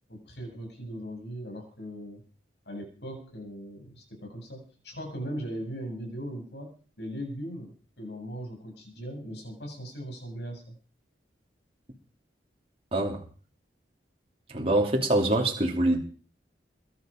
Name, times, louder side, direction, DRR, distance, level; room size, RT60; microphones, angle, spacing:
voice 1, 0.1-2.2 2.6-10.7, equal, 65° left, 7.9 m, -39 dB
voice 2, 12.9-13.2 14.5-16.0, right 1 dB, 30° right, 2.9 m, -24 dB
22.5 x 12.0 x 5.2 m
head